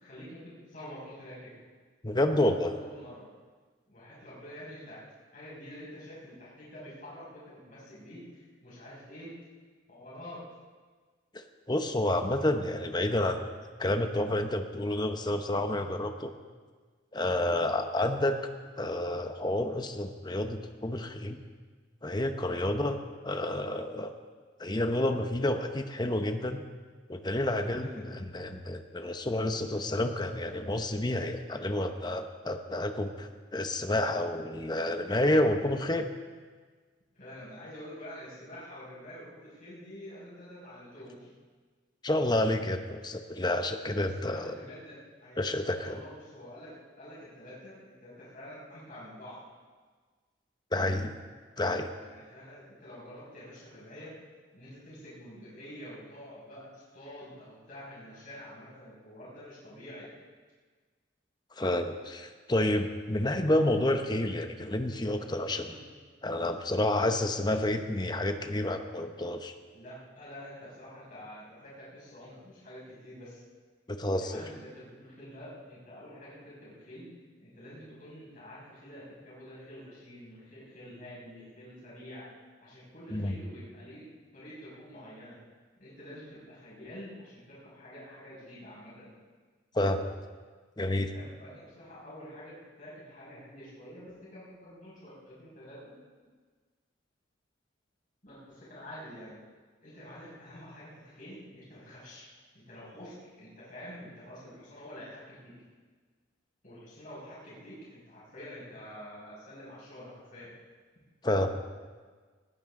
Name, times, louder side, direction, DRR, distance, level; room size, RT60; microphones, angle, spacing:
voice 1, 0.0-1.5 2.6-3.2 3.9-5.0 5.3-9.3 9.9-10.4 17.4-17.6 22.5-22.6 27.5-28.2 31.3-31.5 37.1-41.3 43.9-45.5 45.7-49.4 52.0-54.1 54.5-60.1 65.6-65.8 69.7-73.4 74.2-77.1 77.4-82.3 82.6-85.4 85.8-89.1 91.0-95.9 98.2-99.4 99.8-102.3 102.5-105.5 106.6-110.5, equal, 45° left, -7 dB, 5.9 m, -47 dB
voice 2, 2.0-2.8 11.3-13.4 13.8-16.3 17.1-18.4 18.8-21.4 22.0-23.0 23.2-24.1 24.6-26.6 27.1-36.1 42.0-44.5 45.4-46.0 50.7-51.1 51.6-51.9 61.6-65.7 66.2-69.5 73.9-74.4 83.1-83.4 89.7-90.1 90.8-91.1 111.2-111.6, left 1 dB, 20° left, 7 dB, 0.9 m, -29 dB
20.0 x 15.5 x 3.8 m, 1.5 s
head